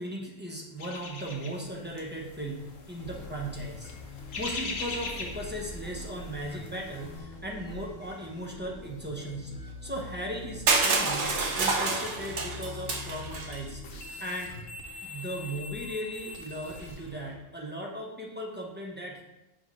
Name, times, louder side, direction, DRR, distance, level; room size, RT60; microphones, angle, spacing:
voice 1, 0.0-13.8 14.2-14.5 15.0-19.2, right 1 dB, 10° right, -3 dB, 0.9 m, -37 dB
sound 1, 0.8-7.2, left 3 dB, 55° left, 1.0 m, -41 dB
sound 2, 3.0-17.3, left 2 dB, 75° left, 1.3 m, -44 dB
Crushing, 10.7-13.6, right 3 dB, 65° right, 1.2 m, -27 dB
6.3 x 3.5 x 4.8 m, 0.93 s
omnidirectional pair, 1.3 m